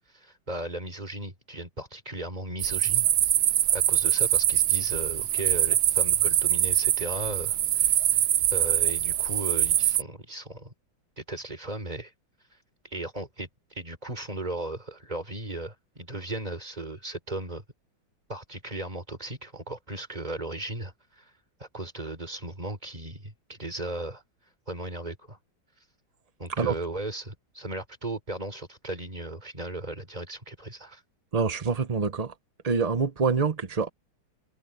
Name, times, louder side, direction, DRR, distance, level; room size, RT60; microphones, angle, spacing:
voice 1, 0.1-3.1 3.7-8.1 8.5-10.7 11.2-12.1 12.8-17.6 18.3-21.3 21.6-24.2 24.7-25.4 26.4-31.0, right 2 dB, 20° right, 3.6 m, -36 dB
sound 1, 2.6-10.0, right 12 dB, 70° right, 1.5 m, -24 dB
voice 2, 31.3-32.3 32.6-33.9, right 5 dB, 45° right, 0.5 m, -26 dB
omnidirectional pair, 2.1 m